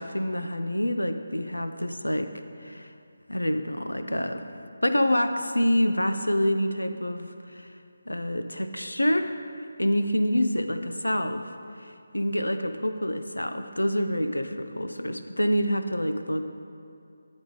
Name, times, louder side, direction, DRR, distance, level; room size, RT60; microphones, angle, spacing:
voice 1, 0.0-2.3 2.6-2.9 3.3-4.4 4.8-7.7 8.1-9.3 9.8-11.5 11.8-16.5, equal, 80° left, 8 dB, 0.4 m, -27 dB
9.8 x 3.5 x 3.8 m, 2.6 s
figure-of-eight pair, 155°, 0 cm